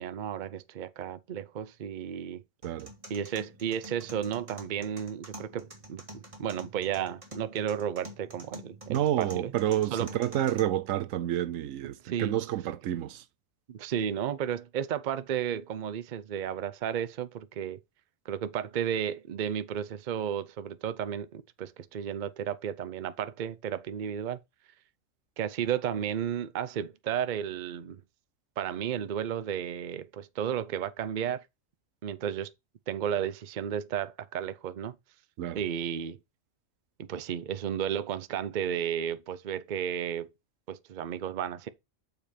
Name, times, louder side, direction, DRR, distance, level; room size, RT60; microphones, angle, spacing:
voice 1, 0.0-2.4 3.1-9.5 9.9-10.2 12.0-12.4 13.7-17.8 18.3-24.4 25.4-28.0 28.6-31.4 32.0-32.5 32.9-35.0 35.5-36.2 37.0-40.3 40.7-41.7, right 9 dB, 50° right, 0.6 m, -33 dB
sound 1, 2.6-10.6, right 1 dB, 25° right, 1.9 m, -48 dB
voice 2, 8.9-13.2 35.4-35.6, right 12 dB, 80° right, 1.0 m, -29 dB
6.9 x 5.2 x 4.3 m
omnidirectional pair, 1.4 m